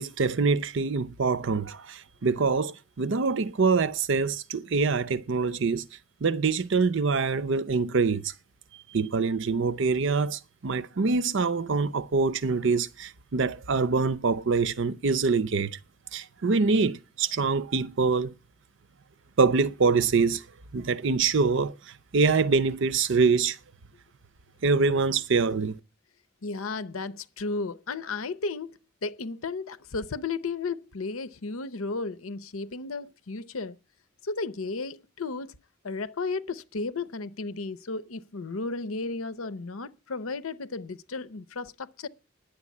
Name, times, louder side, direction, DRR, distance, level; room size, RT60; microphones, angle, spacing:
voice 1, 0.0-5.9 6.2-8.3 8.9-15.8 16.1-18.3 19.4-20.4 20.7-23.6 24.6-25.7, right 4 dB, 65° right, 0.6 m, -25 dB
voice 2, 26.4-33.8 34.2-35.6 35.8-42.1, left 3 dB, 90° left, 0.8 m, -34 dB
10.5 x 7.7 x 8.4 m
head